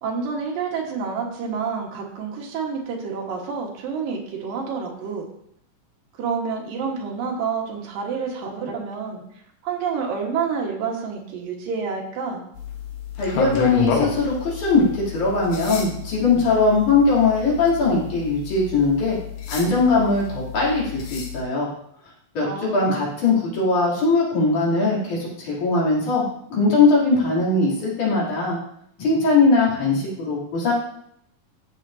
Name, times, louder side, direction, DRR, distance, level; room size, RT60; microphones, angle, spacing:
voice 1, 0.0-5.3 6.2-9.2 9.6-12.4 22.4-23.1, right 5 dB, 90° right, 0 dB, 3.2 m, -28 dB
sound 1, 12.6-21.4, left 6 dB, 80° left, 2.8 m, -31 dB
voice 2, 13.2-19.2 19.5-21.7 22.3-26.2 26.5-28.6 29.0-30.7, left 3 dB, 60° left, -6 dB, 4.4 m, -20 dB
13.0 x 7.2 x 2.7 m, 0.72 s
omnidirectional pair, 3.9 m